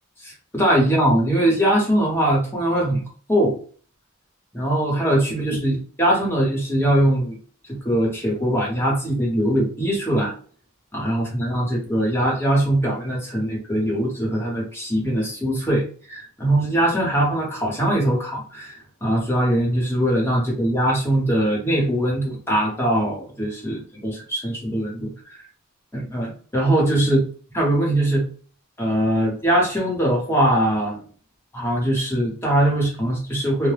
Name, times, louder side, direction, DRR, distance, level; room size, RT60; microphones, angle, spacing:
voice 1, 0.2-3.0 3.3-3.6 4.5-7.4 7.7-10.3 10.9-25.1 25.9-27.2 27.5-28.3 28.8-31.0 31.5-33.7, right 1 dB, 10° left, -3 dB, 1.0 m, -21 dB
2.2 x 2.1 x 3.2 m, 0.42 s
head